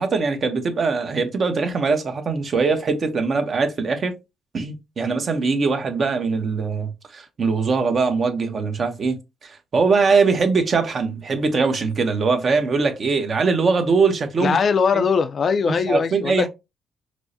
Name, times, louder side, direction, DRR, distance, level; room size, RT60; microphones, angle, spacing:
voice 1, 0.0-4.2 4.5-14.6 14.9-15.0 15.7-16.5, right 4 dB, 45° right, 0.8 m, -22 dB
voice 2, 14.4-16.4, left 5 dB, 50° left, 0.4 m, -20 dB
4.5 x 2.0 x 2.7 m
cardioid pair, 95°, 0 cm